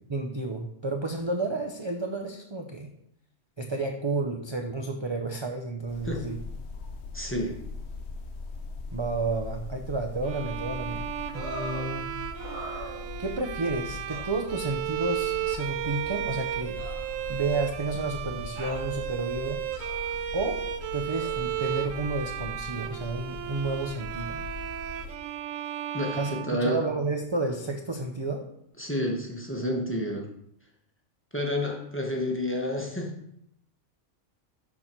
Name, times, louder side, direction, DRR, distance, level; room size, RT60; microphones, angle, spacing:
voice 1, 0.1-2.9 3.6-6.4 8.9-11.1 11.3-12.1 13.2-16.8 17.3-19.6 20.3-20.6 20.9-24.4 26.1-26.3 26.6-28.5, right 3 dB, 30° right, 3 dB, 0.5 m, -31 dB
sound 1, 5.9-25.2, left 4 dB, 60° left, 1.0 m, -41 dB
voice 2, 7.1-7.6 25.9-26.8 28.8-30.3 31.3-33.1, left 1 dB, 10° left, 0 dB, 1.1 m, -30 dB
Bowed string instrument, 10.2-27.2, right 11 dB, 75° right, 0.9 m, -34 dB
sound 2, 11.3-11.9 12.4-13.4 14.1-14.3 15.4-15.5 16.8-17.7 18.6-18.9 19.7-20.2 21.2-21.3, right 1 dB, 55° right, 2.4 m, -41 dB
11.5 x 4.2 x 4.5 m, 0.74 s
omnidirectional pair, 1.4 m